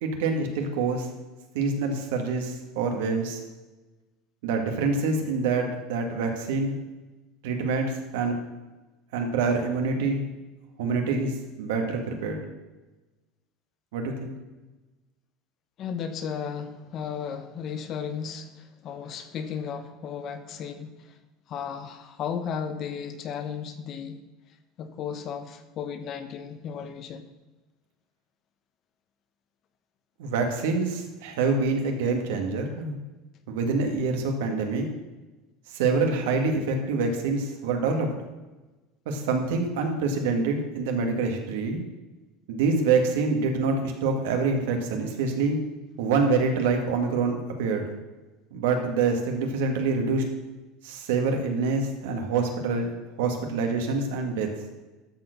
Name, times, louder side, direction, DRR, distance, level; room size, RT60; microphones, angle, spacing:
voice 1, 0.0-1.1 1.5-3.4 4.4-6.7 7.4-8.4 9.1-10.2 10.8-12.4 13.9-14.3 30.2-33.0 33.5-34.8 35.7-38.1 39.1-41.8 42.5-45.6 46.0-47.9 48.5-50.2 50.8-52.9 53.2-54.5, right 4 dB, 85° right, 1.9 m, -26 dB
voice 2, 15.8-21.1 21.5-24.2 24.8-27.2, left 7 dB, 35° left, 0.8 m, -35 dB
12.5 x 4.5 x 6.7 m
cardioid pair, 170°, 0 cm